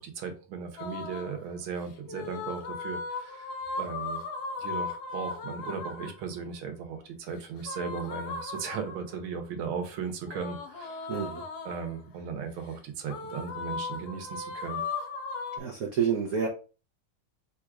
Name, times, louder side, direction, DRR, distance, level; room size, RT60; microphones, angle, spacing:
voice 1, 0.0-3.5 3.8-4.2 4.6-11.1 11.6-14.8, right 6 dB, 85° right, 6 dB, 1.7 m, -37 dB
sound 1, 0.8-1.4 2.1-6.2 7.6-9.2 10.3-12.0 13.1-15.6, left 4 dB, 65° left, 1.1 m, -37 dB
voice 2, 11.1-11.4 15.6-16.5, right 7 dB, 65° right, 1 dB, 0.9 m, -28 dB
4.1 x 2.4 x 4.6 m, 0.35 s
omnidirectional pair, 2.3 m